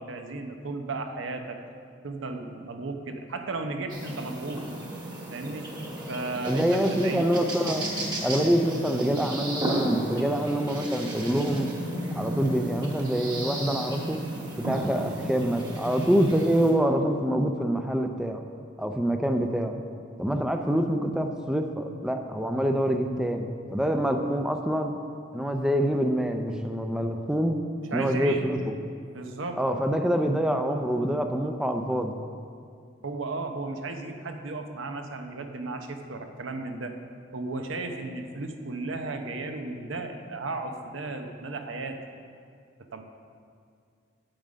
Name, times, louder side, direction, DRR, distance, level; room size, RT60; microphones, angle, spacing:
voice 1, 0.0-1.6 2.0-4.7 5.3-5.7 6.1-7.3 27.9-28.5 29.1-29.6 33.0-36.9 37.3-42.0 42.9-43.0, right 3 dB, 80° right, 6 dB, 0.8 m, -34 dB
sound 1, 3.9-16.7, right 1 dB, 20° right, 1.4 m, -34 dB
voice 2, 6.5-7.9 8.2-11.7 12.1-14.2 14.6-18.4 18.8-19.8 20.2-24.9 25.3-27.6 27.9-28.7 29.6-32.2, equal, 5° right, 5 dB, 0.5 m, -26 dB
8.9 x 7.9 x 5.1 m, 2.3 s
head